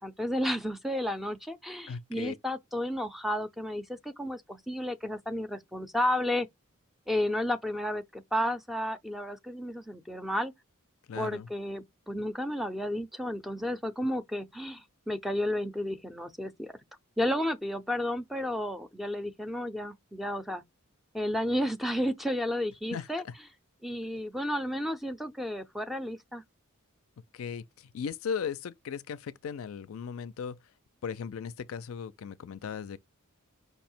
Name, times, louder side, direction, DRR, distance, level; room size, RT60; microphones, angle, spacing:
voice 1, 0.0-6.5 7.1-10.5 11.1-16.7 17.2-20.6 21.1-23.2 23.8-26.4, left 1 dB, ahead, 0.4 m, -32 dB
voice 2, 1.9-2.3 11.1-11.5 22.9-23.3 27.3-30.6 31.0-33.0, left 6 dB, 70° left, 0.4 m, -37 dB
5.4 x 2.1 x 4.2 m
head